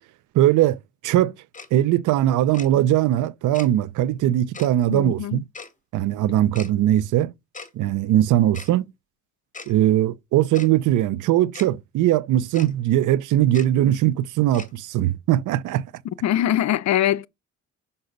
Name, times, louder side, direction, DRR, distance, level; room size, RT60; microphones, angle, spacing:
voice 1, 0.3-0.8 1.0-1.3 1.7-5.4 5.9-7.3 7.7-8.9 9.7-15.9, right 13 dB, 85° right, 0.6 m, -20 dB
Tick-tock, 1.5-1.7 2.5-2.7 3.5-3.7 4.5-4.7 5.5-5.7 6.5-6.7 7.5-7.7 8.5-8.7 9.5-9.7 10.5-10.7 11.5-11.7 12.5-12.7 13.5-13.7 14.5-14.7, left 4 dB, 25° left, 2.2 m, -38 dB
voice 2, 4.9-5.4 16.2-17.3, left 12 dB, 65° left, 0.6 m, -22 dB
6.6 x 5.6 x 4.0 m
cardioid pair, 90°, 30 cm